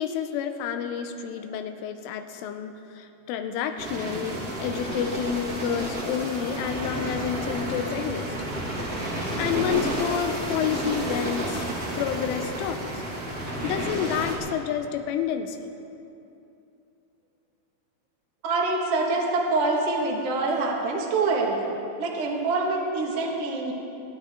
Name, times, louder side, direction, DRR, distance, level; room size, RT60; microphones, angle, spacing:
voice 1, 0.0-8.3 9.4-11.7 12.0-13.0 13.6-15.7, left 8 dB, 85° left, 7 dB, 3.2 m, -29 dB
sound 1, 3.8-14.4, right 1 dB, 30° right, 1.6 m, -31 dB
voice 2, 18.4-21.7 22.0-23.7, right 3 dB, 55° right, -2 dB, 1.7 m, -25 dB
27.5 x 9.7 x 3.7 m, 2.7 s
omnidirectional pair, 5.6 m